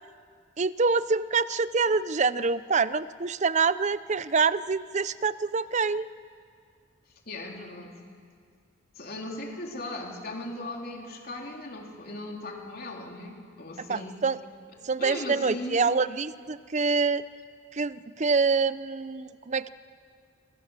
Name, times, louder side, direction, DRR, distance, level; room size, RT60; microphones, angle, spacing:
voice 1, 0.6-6.1 13.8-14.4 14.8-17.2 17.7-19.7, right 4 dB, 35° right, 16 dB, 0.6 m, -26 dB
voice 2, 7.3-7.9 9.0-14.2 15.0-15.8, left 2 dB, 50° left, 1 dB, 3.8 m, -38 dB
27.0 x 25.5 x 7.4 m, 2.2 s
head